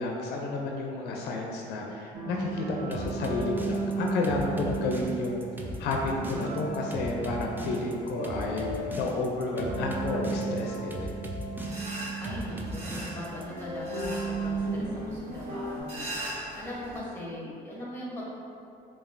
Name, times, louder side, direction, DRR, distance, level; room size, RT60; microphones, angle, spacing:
voice 1, 0.0-8.7 8.9-11.1, left 2 dB, 75° left, 0 dB, 0.4 m, -31 dB
sound 1, 2.1-15.8, right 3 dB, 55° right, 0.7 m, -35 dB
sound 2, 2.9-13.4, right 1 dB, 10° right, 0.3 m, -38 dB
sound 3, 11.6-17.0, right 1 dB, 35° right, 1.4 m, -41 dB
voice 2, 12.2-18.2, left 1 dB, 15° left, -5 dB, 1.0 m, -40 dB
5.2 x 2.4 x 2.5 m, 2.6 s
cardioid pair, 110°, 17 cm